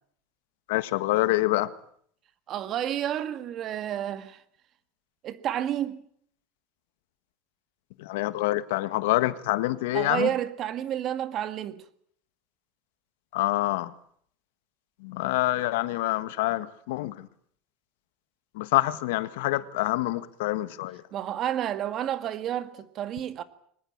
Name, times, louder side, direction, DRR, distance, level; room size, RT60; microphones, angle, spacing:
voice 1, 0.7-1.7 8.0-10.3 13.3-13.9 15.0-17.3 18.5-21.0, left 17 dB, 80° left, 1.6 m, -26 dB
voice 2, 2.5-4.4 5.2-6.0 9.9-11.8 21.1-23.4, right 11 dB, 35° right, 1.9 m, -30 dB
23.5 x 20.5 x 8.7 m
supercardioid pair, 155°, 0 cm